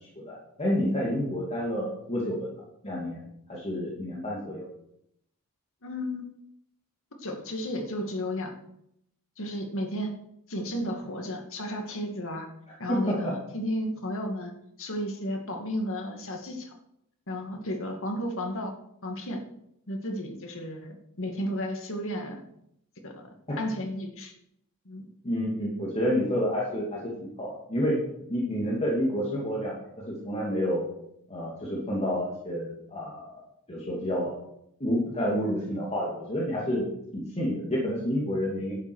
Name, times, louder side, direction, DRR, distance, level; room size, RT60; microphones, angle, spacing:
voice 1, 0.0-2.6 2.8-3.2 3.5-4.7 12.9-13.3 23.5-23.6 25.2-28.0 28.3-30.8 31.3-33.3 33.7-34.4 34.8-38.8, equal, 30° left, -4 dB, 2.6 m, -29 dB
voice 2, 5.8-6.2 7.2-8.5 9.4-10.1 10.5-12.5 12.8-14.5 14.8-16.7 17.3-18.7 19.0-19.4 19.9-22.4 23.0-23.3 23.6-24.3 24.9-25.1, equal, 65° left, 3 dB, 2.3 m, -33 dB
11.5 x 8.2 x 6.3 m, 0.75 s
head